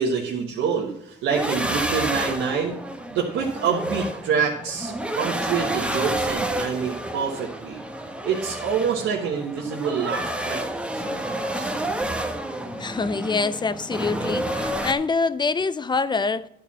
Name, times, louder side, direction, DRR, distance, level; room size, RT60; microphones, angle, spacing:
voice 1, 0.0-2.8 3.1-7.8 8.2-11.7, right 6 dB, 85° right, 1.4 m, -26 dB
sound 1, 1.3-14.9, right 1 dB, 5° right, 1.1 m, -29 dB
voice 2, 12.8-16.5, left 4 dB, 20° left, 0.5 m, -25 dB
10.5 x 4.6 x 7.3 m
cardioid pair, 90°, 20 cm